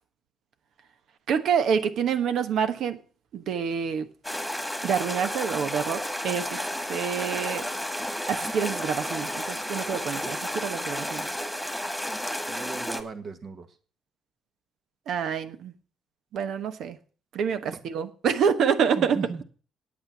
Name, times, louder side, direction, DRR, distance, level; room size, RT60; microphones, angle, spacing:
voice 1, 1.3-3.0 3.3-4.1 4.8-6.6 6.9-7.7 8.3-11.3 15.1-15.7 16.3-17.0 17.3-19.2, right 7 dB, 75° right, 1.1 m, -27 dB
sound 1, 4.2-13.0, equal, ahead, 1.8 m, -32 dB
voice 2, 12.5-13.7 17.7-17.8 19.0-19.4, right 4 dB, 50° right, 1.6 m, -36 dB
8.8 x 8.8 x 7.8 m
cardioid pair, 90°, 0 cm